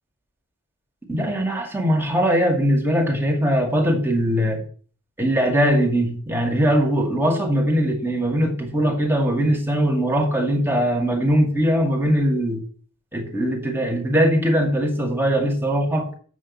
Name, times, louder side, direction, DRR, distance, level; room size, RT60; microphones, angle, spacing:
voice 1, 1.1-4.6 5.2-12.6 13.1-16.1, equal, 10° right, 2.1 m, -21 dB
7.4 x 6.3 x 7.2 m
head